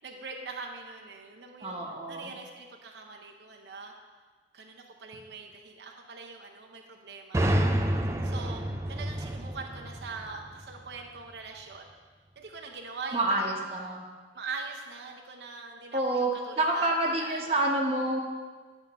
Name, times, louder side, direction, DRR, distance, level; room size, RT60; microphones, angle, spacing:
voice 1, 0.0-1.8 2.1-3.9 4.5-7.6 8.2-8.6 8.9-11.9 12.4-13.7 14.3-17.6, right 4 dB, 80° right, 1 dB, 0.7 m, -42 dB
voice 2, 1.6-2.3 13.1-14.0 15.9-16.3 16.6-18.2, right 1 dB, 35° right, -1 dB, 1.0 m, -28 dB
sound 1, 7.3-11.0, right 1 dB, 15° right, 0.4 m, -29 dB
9.2 x 3.6 x 6.6 m, 1.4 s
head